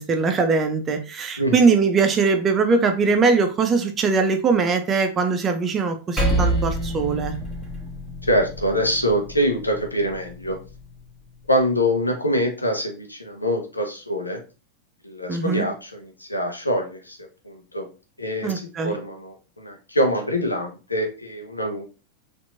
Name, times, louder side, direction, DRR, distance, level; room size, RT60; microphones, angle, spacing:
voice 1, 0.0-7.3 15.3-15.7 18.4-19.0, right 4 dB, 25° right, 6 dB, 0.6 m, -21 dB
Percussion, 6.2-10.9, right 1 dB, 15° left, 1.3 m, -27 dB
voice 2, 8.2-10.6 11.5-14.4 15.0-17.2 17.4-17.9 18.2-18.5 18.8-21.9, equal, 85° left, 4 dB, 0.7 m, -24 dB
4.3 x 2.6 x 2.6 m, 0.33 s
figure-of-eight pair, 90°, 0 cm